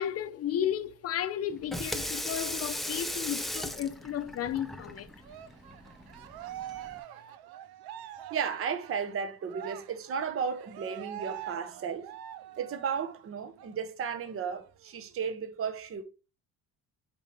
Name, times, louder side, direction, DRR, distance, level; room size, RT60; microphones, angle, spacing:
voice 1, 0.0-5.1, left 10 dB, 40° left, 0.8 m, -33 dB
Water tap faucet / Sink (filling or washing), 1.5-7.0, equal, ahead, 0.4 m, -38 dB
Cheering, 5.2-13.2 13.6-13.7 14.1-15.1, right 12 dB, 70° right, 0.8 m, -45 dB
voice 2, 8.3-12.1 12.6-16.0, right 6 dB, 35° right, 1.1 m, -34 dB
9.0 x 5.1 x 3.4 m
cardioid pair, 170°, 38 cm